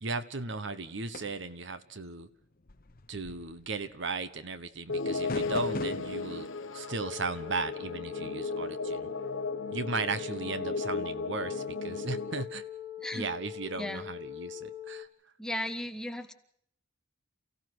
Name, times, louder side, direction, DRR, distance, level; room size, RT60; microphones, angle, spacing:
voice 1, 0.0-2.3 3.1-6.5 6.7-9.1 9.7-12.6 13.1-15.1, right 3 dB, 65° right, 13 dB, 1.2 m, -36 dB
sound 1, 1.1-1.5 2.6-4.0 5.3-6.2, left 2 dB, 45° left, 0.9 m, -41 dB
sound 2, 4.9-12.4, left 3 dB, 80° left, 1.2 m, -35 dB
sound 3, 6.9-15.1, left 11 dB, 30° right, 2.7 m, -42 dB
voice 2, 13.8-14.1 15.4-16.3, equal, 5° left, 7 dB, 1.2 m, -36 dB
29.0 x 16.5 x 6.2 m, 0.67 s
head